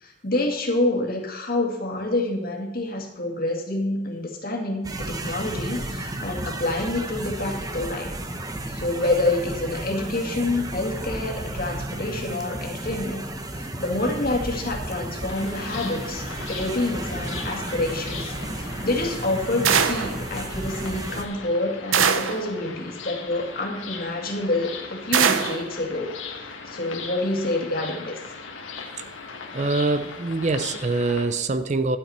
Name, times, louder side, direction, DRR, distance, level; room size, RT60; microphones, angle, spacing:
voice 1, 0.0-8.1 8.7-13.3 13.5-28.2, left 2 dB, 50° left, 1 dB, 2.1 m, -27 dB
sound 1, 4.8-21.3, right 1 dB, 20° right, 0.9 m, -33 dB
sound 2, 15.3-31.3, left 4 dB, 80° left, 1.6 m, -39 dB
sound 3, 19.6-20.2 21.9-22.4 25.1-25.6, right 7 dB, 85° right, 0.8 m, -21 dB
voice 2, 29.5-32.0, right 3 dB, 35° right, 11 dB, 0.5 m, -24 dB
12.0 x 8.6 x 4.3 m, 1.1 s
head